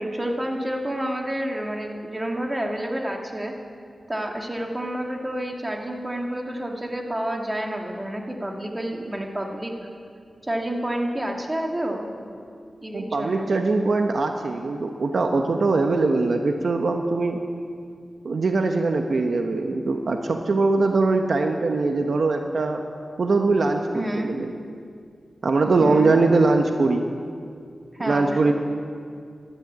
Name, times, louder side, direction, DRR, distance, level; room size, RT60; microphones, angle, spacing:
voice 1, 0.0-3.5 4.1-9.7 10.4-12.1 12.8-13.5 23.9-24.3 25.8-26.1 27.9-28.5, right 1 dB, 20° right, 1 dB, 2.2 m, -29 dB
voice 2, 12.9-17.4 18.2-22.8 23.2-24.5 25.4-27.1 28.0-28.5, right 3 dB, 65° right, 4 dB, 0.9 m, -22 dB
13.5 x 12.0 x 8.6 m, 2.3 s
wide cardioid pair, 75°, 0 cm